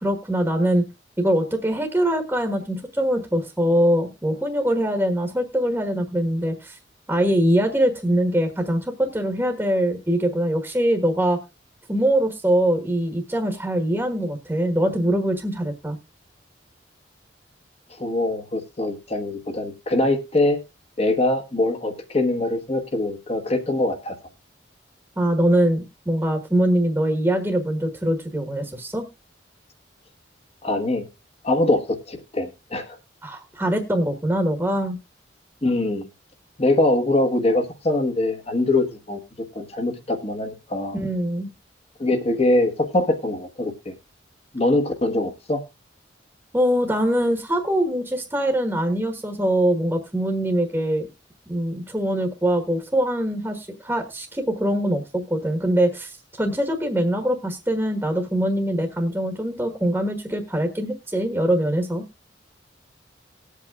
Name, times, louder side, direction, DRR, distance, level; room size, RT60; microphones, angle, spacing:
voice 1, 0.0-0.9 1.2-6.8 7.1-11.4 11.9-16.0 25.2-29.0 33.2-35.0 40.9-41.5 46.5-51.1 51.5-62.0, right 1 dB, 10° right, 4 dB, 1.4 m, -23 dB
voice 2, 18.0-20.6 21.0-24.1 30.6-31.1 31.4-33.0 35.6-36.0 36.6-39.2 39.5-41.0 42.0-43.9 44.5-45.6, left 2 dB, 35° left, 6 dB, 1.3 m, -23 dB
20.0 x 8.3 x 2.4 m, 0.24 s
head